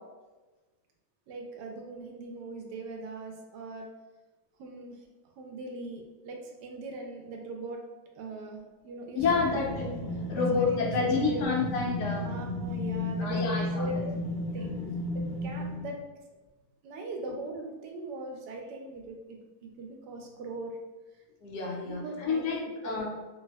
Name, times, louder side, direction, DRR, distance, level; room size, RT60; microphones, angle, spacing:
voice 1, 1.3-3.9 4.6-5.0 5.4-7.8 8.1-9.5 10.3-11.7 12.2-14.2 14.5-14.8 15.1-16.0 16.8-20.8 21.8-23.1, right 2 dB, 90° right, 2 dB, 1.2 m, -40 dB
voice 2, 9.2-9.9 10.3-12.3 13.2-14.1 14.5-14.6 21.4-23.1, left 4 dB, 85° left, -2 dB, 1.3 m, -29 dB
sound 1, 9.2-15.9, left 2 dB, 30° left, 1.0 m, -33 dB
3.3 x 2.6 x 2.2 m, 1.2 s
omnidirectional pair, 1.8 m